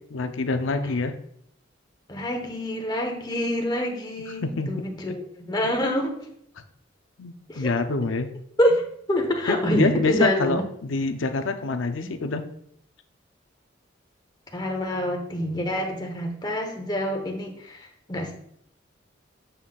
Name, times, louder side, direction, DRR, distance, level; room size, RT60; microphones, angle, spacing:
voice 1, 0.1-1.1 4.4-4.8 7.2-8.3 9.5-12.4, left 3 dB, 80° left, 8 dB, 0.6 m, -26 dB
voice 2, 2.1-6.2 7.5-7.7 8.6-8.8 9.1-10.6 12.0-12.1 14.5-18.3, equal, 20° left, 3 dB, 0.9 m, -26 dB
8.1 x 5.7 x 2.3 m, 0.68 s
head